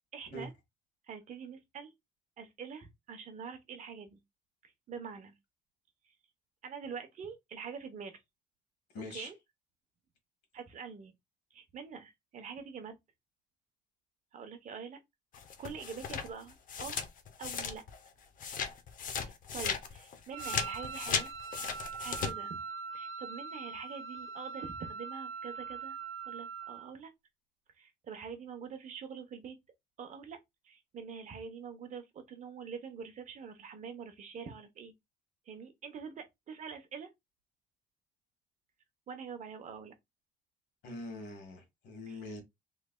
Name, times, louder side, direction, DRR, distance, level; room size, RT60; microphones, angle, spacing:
voice 1, 0.1-0.5 1.0-1.9 2.4-4.2 4.6-5.3 6.6-8.2 9.1-9.3 10.5-11.1 11.5-13.0 14.3-15.0 15.6-17.0 17.4-17.8 19.2-21.3 22.0-22.6 22.9-26.0 26.3-27.1 27.8-29.6 30.0-30.4 30.6-34.9 35.5-37.1 39.1-39.9 42.1-42.4, right 6 dB, 45° right, 0.9 m, -45 dB
voice 2, 8.9-9.3 40.8-42.4, left 2 dB, 80° left, 1.7 m, -43 dB
sound 1, 15.3-18.1 18.4-22.3, left 6 dB, 55° left, 0.7 m, -36 dB
Wind instrument woodwind instrument, 20.3-26.9, right 5 dB, 70° right, 1.2 m, -42 dB
3.2 x 3.2 x 2.2 m
cardioid pair, 110°, 17 cm